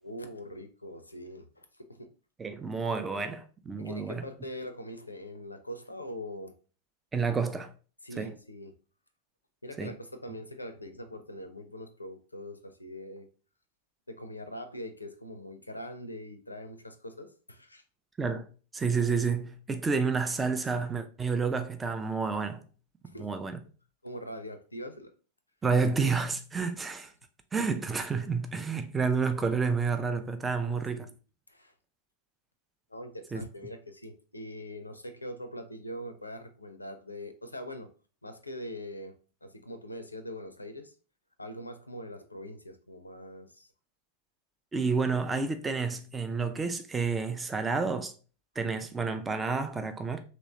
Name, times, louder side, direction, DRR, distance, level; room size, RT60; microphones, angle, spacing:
voice 1, 0.0-2.1 3.8-6.5 8.0-8.7 9.6-13.3 14.1-17.8 23.0-23.3 24.0-25.1 30.7-31.1 31.5-31.7 32.9-37.9 38.2-39.1 39.4-40.9 41.4-43.7, left 1 dB, 85° left, 0.4 m, -42 dB
voice 2, 2.4-4.3 7.1-7.7 8.2-8.3 9.8-9.9 18.2-18.5 18.7-22.6 23.2-23.6 25.6-27.1 27.5-31.1 33.3-33.4 44.7-48.1 48.6-50.2, right 5 dB, 15° right, 0.4 m, -30 dB
3.0 x 3.0 x 2.7 m
figure-of-eight pair, 90°, 0 cm